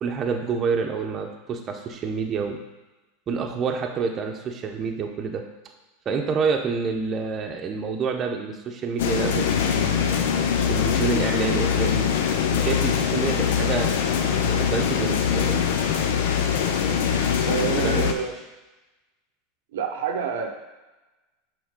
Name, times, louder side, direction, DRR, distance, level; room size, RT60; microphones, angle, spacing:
voice 1, 0.0-2.6 3.3-5.4 6.1-10.3 10.7-12.1 12.5-15.6 17.8-18.0, right 5 dB, 35° right, 2 dB, 0.8 m, -28 dB
sound 1, 9.0-18.1, left 7 dB, 80° left, 0.6 m, -23 dB
voice 2, 17.5-18.3 19.7-20.5, right 7 dB, 80° right, 4 dB, 0.7 m, -27 dB
6.2 x 4.7 x 3.7 m, 1.1 s
supercardioid pair, 110°, 0 cm